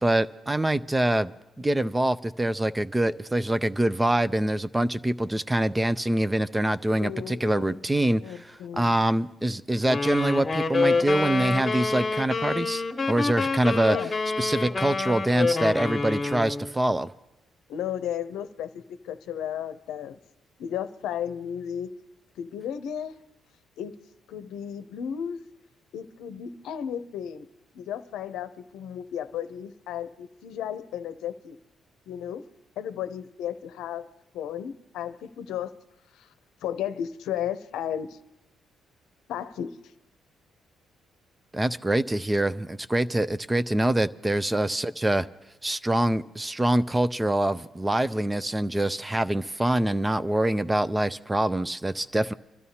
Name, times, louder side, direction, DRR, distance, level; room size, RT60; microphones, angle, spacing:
voice 1, 0.0-1.3 1.6-14.1 14.4-17.1 41.5-45.3 45.6-52.3, right 1 dB, 15° right, 0.4 m, -25 dB
voice 2, 7.0-7.8 8.2-9.1 13.8-14.1 17.7-20.2 20.6-21.9 22.4-23.1 23.8-24.0 24.3-25.4 25.9-27.5 27.7-31.6 32.1-32.4 32.8-34.1 34.3-35.7 36.1-36.3 36.6-38.2 39.3-39.7, left 9 dB, 85° left, 0.7 m, -34 dB
sound 1, 9.9-16.7, left 3 dB, 25° left, 1.4 m, -27 dB
26.5 x 12.5 x 2.8 m
cardioid pair, 90°, 0 cm